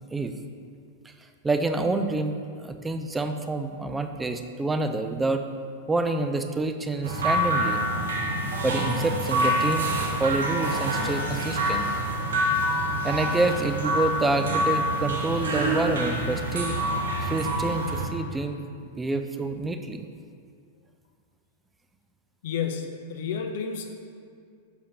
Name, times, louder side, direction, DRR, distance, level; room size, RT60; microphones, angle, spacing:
voice 1, 1.4-5.4 5.9-7.8 8.6-11.9 13.0-16.7 17.2-20.0, right 2 dB, 10° right, 7 dB, 0.4 m, -27 dB
sound 1, 7.0-18.1, equal, 65° right, 0.8 m, -26 dB
voice 2, 22.4-24.0, left 6 dB, 55° left, 5 dB, 0.4 m, -31 dB
6.1 x 5.6 x 2.8 m, 2.2 s
figure-of-eight pair, 95°, 0 cm